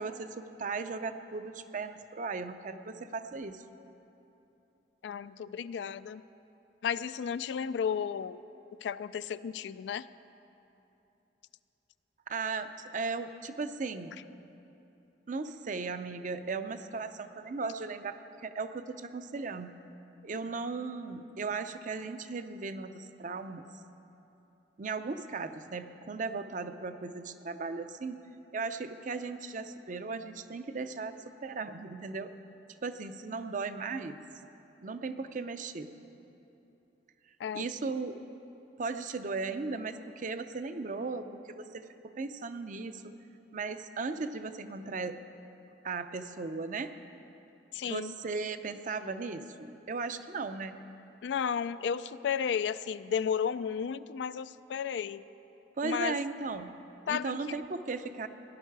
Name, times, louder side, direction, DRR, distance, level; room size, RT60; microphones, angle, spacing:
voice 1, 0.0-3.6 12.3-14.2 15.3-19.7 20.2-23.7 24.8-28.2 28.5-32.3 32.8-34.2 34.8-35.9 37.5-38.2 38.8-43.1 43.5-45.2 45.8-46.9 47.8-50.8 55.8-56.8 57.1-58.3, right 4 dB, 45° right, 9 dB, 0.5 m, -37 dB
voice 2, 5.0-6.2 6.8-8.4 8.8-10.1 37.4-37.7 47.7-48.2 51.2-55.2 55.8-56.2 57.1-57.4, left 7 dB, 75° left, 15 dB, 0.3 m, -33 dB
17.0 x 11.0 x 4.7 m, 2.9 s
head